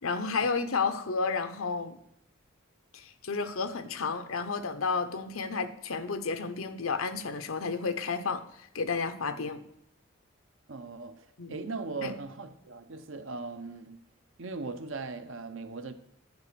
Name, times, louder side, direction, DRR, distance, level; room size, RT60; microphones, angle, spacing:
voice 1, 0.0-2.0 2.9-9.6 11.4-11.5 12.0-12.1, left 4 dB, 80° left, 0.8 m, -31 dB
voice 2, 10.7-14.0 14.4-15.9, right 3 dB, 70° right, 0.8 m, -39 dB
10.5 x 5.0 x 6.8 m
head